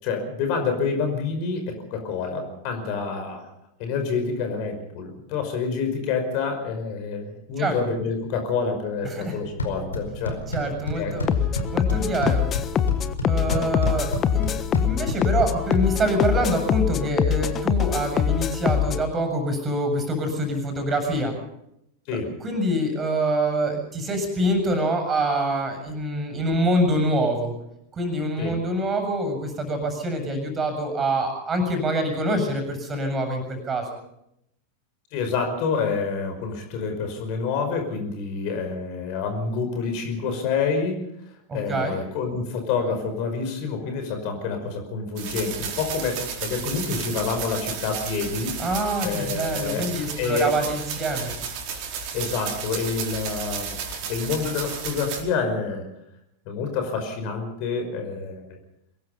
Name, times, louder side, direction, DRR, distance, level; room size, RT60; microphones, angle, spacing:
voice 1, 0.0-3.5 3.8-10.4 11.0-11.2 22.1-22.3 28.4-28.6 35.1-41.0 41.5-48.5 49.0-49.9 50.2-50.5 52.1-53.7 54.1-55.8 56.5-58.4, left 5 dB, 45° left, 5 dB, 5.4 m, -27 dB
sound 1, 9.4-16.4, left 1 dB, 75° left, 4.8 m, -32 dB
voice 2, 10.5-11.2 11.7-12.5 13.3-21.3 22.4-27.5 27.9-33.9 41.5-42.0 48.6-51.6, right 1 dB, 20° right, 6 dB, 7.4 m, -25 dB
sound 2, 11.3-19.0, left 8 dB, 25° left, 1.4 m, -24 dB
sound 3, 45.2-55.2, right 6 dB, 45° right, 4.6 m, -33 dB
23.5 x 21.5 x 5.6 m, 0.78 s
figure-of-eight pair, 90°, 0 cm